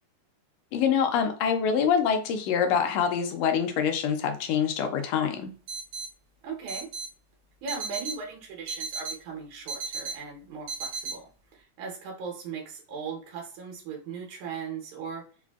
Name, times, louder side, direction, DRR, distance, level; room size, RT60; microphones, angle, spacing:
voice 1, 0.7-5.5, left 7 dB, 80° left, 6 dB, 1.6 m, -25 dB
sound 1, 5.7-6.1 6.7-7.1 7.7-8.2 8.7-9.1 9.7-10.2 10.7-11.2, right 4 dB, 65° right, 1.3 m, -34 dB
voice 2, 6.4-6.9 7.6-15.2, right 5 dB, 90° right, -1 dB, 2.4 m, -38 dB
4.9 x 2.5 x 2.3 m, 0.40 s
omnidirectional pair, 3.3 m